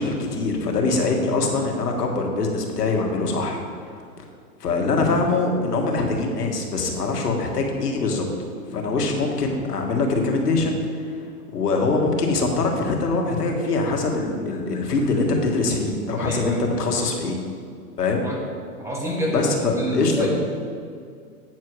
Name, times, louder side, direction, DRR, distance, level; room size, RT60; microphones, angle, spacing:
voice 1, 0.0-3.9 4.6-8.3 8.7-11.2 11.5-17.4 18.0-18.2 19.3-20.3, left 3 dB, 85° left, 2 dB, 1.7 m, -23 dB
voice 2, 16.2-16.8 18.2-18.4 18.8-20.4, equal, 5° right, -3 dB, 0.9 m, -27 dB
8.8 x 4.6 x 6.2 m, 2.3 s
hypercardioid pair, 135°, 46 cm